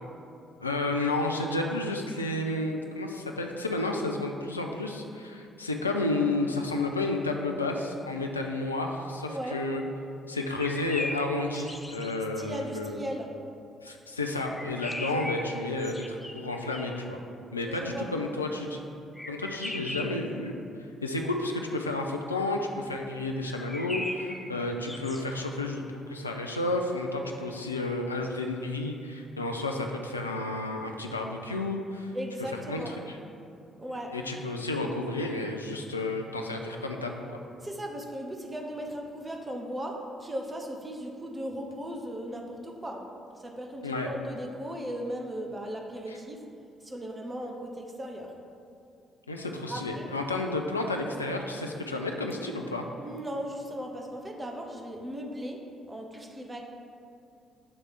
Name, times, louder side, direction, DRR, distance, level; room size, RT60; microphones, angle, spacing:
voice 1, 0.6-9.8 10.3-13.0 13.8-17.2 17.5-18.8 19.3-20.5 21.0-32.1 32.7-33.2 34.1-37.4 43.8-44.1 49.3-52.8, left 2 dB, 85° left, 2 dB, 0.3 m, -31 dB
voice 2, 9.3-9.6 12.4-13.3 15.1-15.4 17.6-18.4 32.1-32.9 33.8-34.2 37.6-43.1 43.3-46.4 46.8-48.3 49.7-50.1 53.0-55.6 55.9-56.6, equal, 20° right, 1 dB, 0.9 m, -37 dB
sound 1, 10.5-12.1 14.4-17.1 19.2-20.3 23.5-25.2, left 1 dB, 10° left, 0.5 m, -39 dB
7.1 x 3.2 x 4.6 m, 2.5 s
figure-of-eight pair, 45°, 0 cm